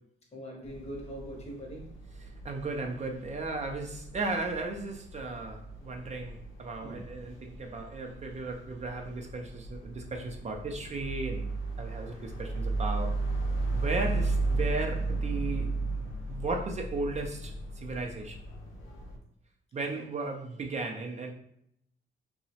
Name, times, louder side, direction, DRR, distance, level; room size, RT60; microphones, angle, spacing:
voice 1, 0.3-2.0 6.8-7.1 19.9-20.0, equal, 35° left, 1 dB, 0.8 m, -42 dB
sound 1, 0.6-19.2, right 2 dB, 80° left, 0.6 m, -35 dB
voice 2, 2.4-11.5 11.8-13.2 13.7-15.7 16.3-18.4 19.7-21.3, right 3 dB, 35° right, 3 dB, 0.4 m, -35 dB
2.8 x 2.0 x 2.7 m, 0.75 s
cardioid pair, 90°, 20 cm